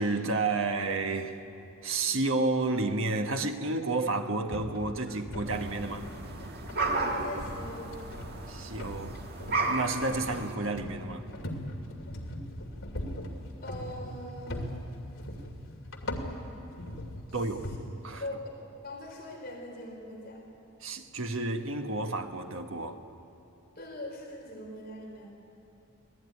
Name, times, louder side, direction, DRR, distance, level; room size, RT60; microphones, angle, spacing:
voice 1, 0.0-1.4 1.8-6.1 6.7-6.8 8.5-9.2 9.5-11.3 17.3-17.7 18.0-18.2 20.8-23.0, right 3 dB, 70° right, 5 dB, 1.5 m, -31 dB
sound 1, 4.5-17.8, left 1 dB, 70° left, 2.5 m, -40 dB
sound 2, 5.5-10.6, right 3 dB, 45° right, 1.9 m, -34 dB
voice 2, 6.8-7.9 13.6-14.7 17.3-17.4 18.2-18.5 18.8-20.4 23.8-25.3, left 1 dB, 45° left, -1 dB, 4.0 m, -41 dB
25.0 x 16.5 x 9.8 m, 2.9 s
head